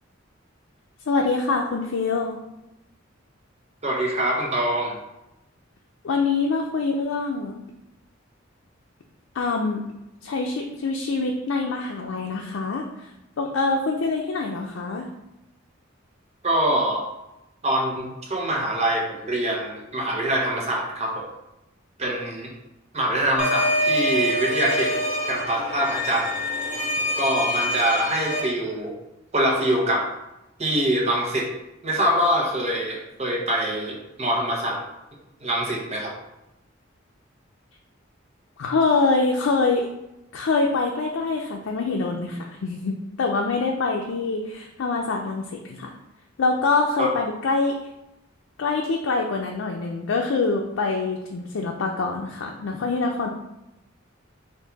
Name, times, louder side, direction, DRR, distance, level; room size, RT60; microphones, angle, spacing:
voice 1, 1.1-2.4 6.0-7.6 9.3-9.8 10.2-12.9 13.4-15.1 38.6-39.9 40.3-45.9 46.4-47.7 48.6-53.3, left 3 dB, 90° left, 1 dB, 0.4 m, -25 dB
voice 2, 3.8-5.0 16.4-17.0 17.6-21.3 22.0-22.5 22.9-25.0 25.3-26.4 27.2-28.9 29.3-30.1 30.6-31.5 31.8-34.8 35.4-36.1 47.0-47.1, right 1 dB, 35° right, -1 dB, 0.9 m, -24 dB
sound 1, 23.4-28.4, equal, 40° left, 1.2 m, -25 dB
4.5 x 2.6 x 4.0 m, 0.91 s
head